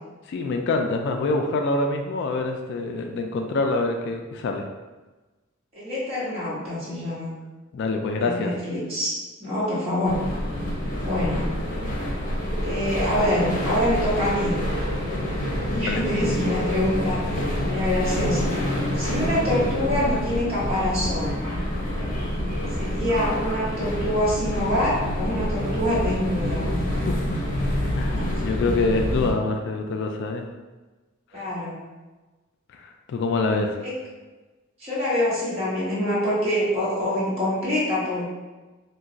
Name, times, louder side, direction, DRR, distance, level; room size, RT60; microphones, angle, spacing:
voice 1, 0.3-4.6 7.7-8.5 11.9-12.1 15.7-16.0 26.9-27.4 27.9-30.4 31.4-31.5 32.7-33.8, left 3 dB, 60° left, 4 dB, 0.3 m, -26 dB
voice 2, 5.7-7.3 8.2-10.2 11.0-11.5 12.6-14.6 15.7-18.5 18.9-21.5 22.8-26.7 28.1-28.2 31.3-31.8 33.8-33.9 34.8-38.3, left 1 dB, 30° right, -9 dB, 1.2 m, -25 dB
sound 1, 10.0-29.3, equal, 45° left, 0.7 m, -27 dB
2.4 x 2.2 x 3.8 m, 1.2 s
head